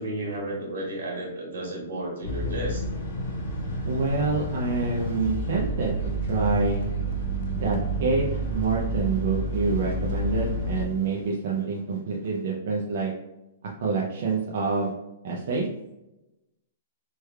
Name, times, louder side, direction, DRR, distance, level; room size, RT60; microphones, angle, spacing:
voice 1, 0.0-2.8 11.5-11.7, right 1 dB, 75° right, -2 dB, 1.4 m, -33 dB
sound 1, 2.2-10.9, right 1 dB, 40° left, 0.8 m, -29 dB
voice 2, 3.9-5.9 6.3-6.9 7.6-13.1 13.8-14.9 15.2-15.7, right 4 dB, 50° right, -2 dB, 0.4 m, -27 dB
sound 2, 6.8-9.3, left 3 dB, 60° left, 0.3 m, -42 dB
3.2 x 2.2 x 3.3 m, 0.97 s
hypercardioid pair, 180°, 0 cm